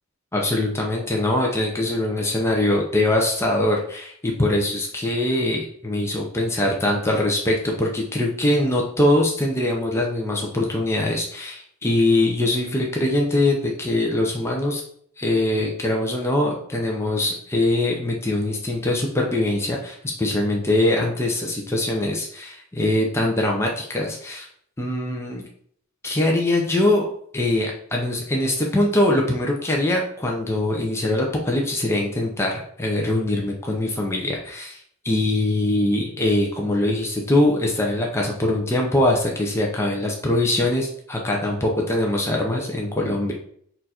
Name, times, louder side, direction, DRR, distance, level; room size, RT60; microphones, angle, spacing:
voice 1, 0.3-14.8 15.2-24.5 24.8-25.4 26.0-27.1 27.3-34.8 35.0-43.3, left 1 dB, 10° left, -1 dB, 0.6 m, -22 dB
4.3 x 2.5 x 4.2 m, 0.63 s
head